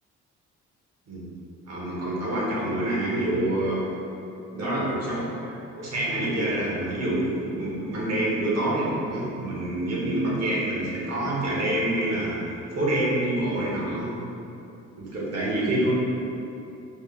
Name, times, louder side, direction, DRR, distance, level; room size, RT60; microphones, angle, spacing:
voice 1, 1.6-3.9 4.6-12.4 12.8-14.1 15.0-15.9, right 1 dB, 60° right, -6 dB, 1.2 m, -27 dB
4.3 x 2.2 x 3.3 m, 2.8 s
cardioid pair, 90°, 30 cm